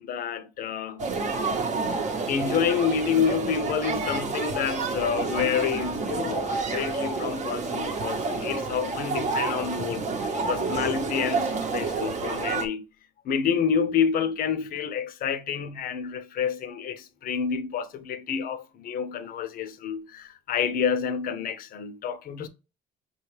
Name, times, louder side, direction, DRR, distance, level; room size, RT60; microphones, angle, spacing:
voice 1, 0.1-1.0 2.3-10.1 10.5-12.8 13.2-22.5, left 7 dB, 60° left, 0.6 m, -28 dB
sound 1, 1.0-12.7, right 4 dB, 45° right, 0.8 m, -29 dB
5.8 x 2.3 x 3.1 m
cardioid pair, 110°, 17 cm